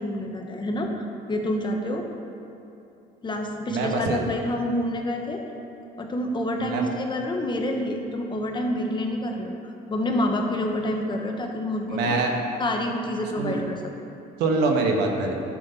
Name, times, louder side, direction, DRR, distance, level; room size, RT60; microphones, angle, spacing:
voice 1, 0.0-2.1 3.2-5.4 6.0-12.1 12.6-13.8, left 1 dB, 25° left, 2 dB, 1.1 m, -28 dB
voice 2, 3.7-4.2 6.6-6.9 11.9-12.4 13.4-13.6 14.4-15.3, right 3 dB, 90° right, 2 dB, 1.3 m, -24 dB
11.5 x 6.5 x 4.0 m, 2.8 s
cardioid pair, 110°, 17 cm